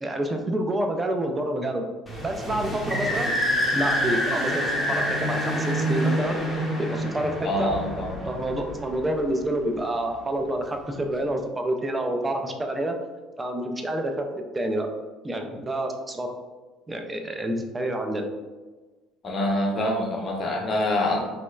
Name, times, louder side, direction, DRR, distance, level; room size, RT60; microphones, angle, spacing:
voice 1, 0.0-1.9 2.2-3.4 3.7-6.4 6.8-7.7 8.3-13.0 13.4-14.3 14.5-14.9 15.2-16.3 16.9-18.3, right 1 dB, 20° right, 3 dB, 0.4 m, -28 dB
sound 1, 2.1-9.4, equal, 5° left, 0.8 m, -27 dB
voice 2, 7.4-8.2 19.2-21.3, left 1 dB, 35° left, -1 dB, 0.7 m, -25 dB
2.9 x 2.9 x 2.3 m, 1.3 s
figure-of-eight pair, 60°, 0 cm